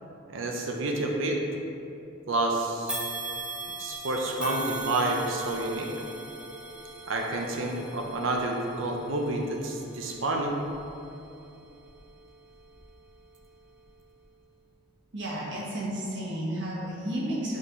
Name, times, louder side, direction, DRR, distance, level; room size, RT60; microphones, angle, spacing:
voice 1, 0.3-1.4 2.3-3.0 3.8-5.9 7.1-10.5, right 2 dB, 80° right, 1 dB, 0.7 m, -29 dB
sound 1, 2.9-12.2 12.7-12.9 13.8-13.9, right 2 dB, 5° right, 0.4 m, -40 dB
voice 2, 15.1-17.6, right 1 dB, 60° right, -5 dB, 1.3 m, -32 dB
7.4 x 4.1 x 3.1 m, 2.7 s
head